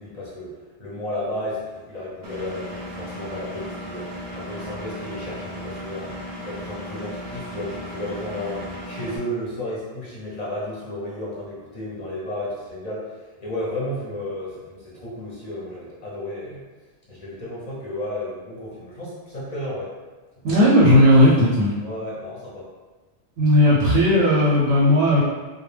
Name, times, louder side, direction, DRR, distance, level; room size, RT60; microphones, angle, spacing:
voice 1, 0.0-6.1 6.4-16.6 17.1-19.9 20.5-20.6 21.8-22.7, left 1 dB, 45° left, -7 dB, 0.6 m, -33 dB
Engine, 2.2-9.2, equal, 50° right, 0.6 m, -35 dB
voice 2, 20.4-21.7 23.4-25.2, left 1 dB, 85° right, -6 dB, 0.9 m, -15 dB
2.2 x 2.1 x 3.1 m, 1.3 s
omnidirectional pair, 1.2 m